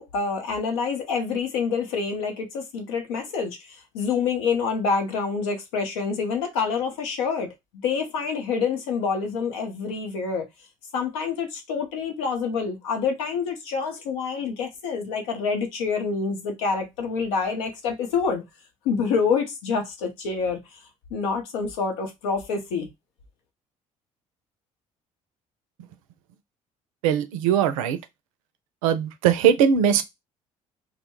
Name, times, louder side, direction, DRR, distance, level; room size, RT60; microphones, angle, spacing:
voice 1, 0.0-3.6 3.9-7.5 7.8-10.5 10.9-18.4 18.8-20.6 21.1-22.9, left 5 dB, 80° left, 0.8 m, -27 dB
voice 2, 27.0-28.0 28.8-30.0, right 8 dB, 80° right, 0.4 m, -20 dB
2.1 x 2.0 x 3.0 m
hypercardioid pair, 55°, 17 cm